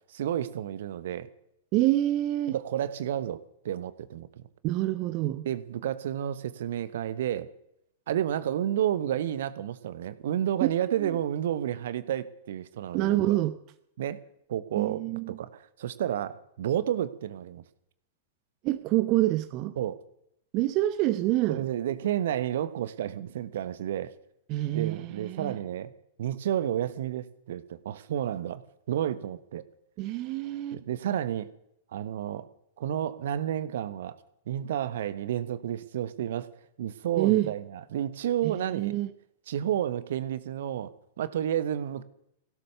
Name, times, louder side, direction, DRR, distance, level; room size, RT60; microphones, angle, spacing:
voice 1, 0.1-1.3 2.5-3.4 3.6-4.4 5.4-7.5 8.1-13.4 14.0-14.2 14.5-17.6 19.8-20.0 21.5-24.1 24.7-25.9 26.2-28.6 28.9-29.6 30.7-31.5 31.9-32.5 32.8-34.2 34.5-36.5 36.8-39.0 39.5-40.9 41.2-42.0, right 10 dB, 60° right, 15 dB, 1.1 m, -31 dB
voice 2, 1.7-2.6 4.6-5.5 10.6-10.7 11.0-11.1 12.9-13.6 14.8-15.4 18.6-19.7 20.5-21.7 24.5-25.5 30.0-30.8 37.2-37.5 38.4-39.1, right 15 dB, 40° right, 11 dB, 0.8 m, -27 dB
16.5 x 12.5 x 6.8 m, 0.77 s
figure-of-eight pair, 100°, 0 cm